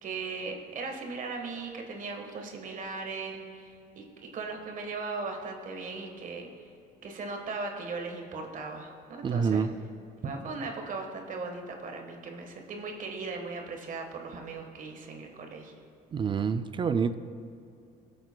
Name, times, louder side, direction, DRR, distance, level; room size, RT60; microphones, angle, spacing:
voice 1, 0.0-6.5 7.0-9.7 10.2-15.7, right 4 dB, 50° right, 3 dB, 1.3 m, -38 dB
voice 2, 9.2-9.7 16.1-17.1, right 6 dB, 30° right, 11 dB, 0.3 m, -27 dB
23.0 x 7.9 x 2.2 m, 2.5 s
cardioid pair, 110°, 17 cm